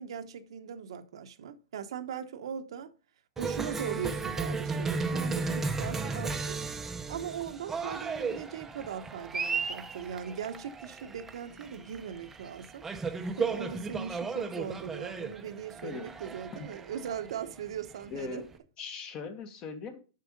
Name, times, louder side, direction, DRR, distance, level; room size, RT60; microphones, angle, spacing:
voice 1, 0.0-2.9 3.4-6.6 7.1-18.5, right 8 dB, 80° right, 0.9 m, -39 dB
Cheering, 3.4-18.5, right 4 dB, 10° right, 0.6 m, -35 dB
voice 2, 18.1-18.5 18.8-20.0, left 5 dB, 30° left, 1.3 m, -40 dB
6.7 x 6.1 x 5.1 m
supercardioid pair, 145°, 3 cm